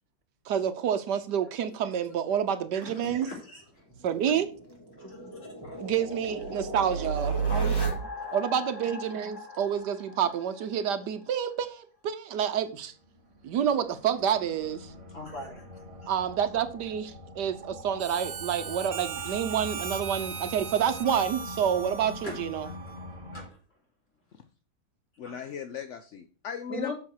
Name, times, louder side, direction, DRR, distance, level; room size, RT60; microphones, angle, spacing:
voice 1, 0.5-3.3 4.0-4.5 5.8-7.4 8.3-12.9 13.4-14.9 16.1-22.7, right 8 dB, 75° right, 1.4 m, -28 dB
voice 2, 2.9-3.8 5.0-5.2 5.6-5.8 7.5-8.3 15.1-15.7 16.0-16.1 19.2-19.4 22.2-22.7 23.3-23.6 25.2-25.5 26.7-26.9, left 1 dB, 40° left, 3.9 m, -40 dB
sound 1, 3.9-10.7, right 4 dB, 15° left, 2.1 m, -33 dB
sound 2, 12.8-23.5, left 1 dB, 25° right, 2.1 m, -44 dB
Harmonica, 18.0-23.2, right 6 dB, 45° right, 1.1 m, -39 dB
voice 3, 25.2-26.9, left 8 dB, 60° left, 0.8 m, -38 dB
7.5 x 6.4 x 6.2 m
omnidirectional pair, 1.9 m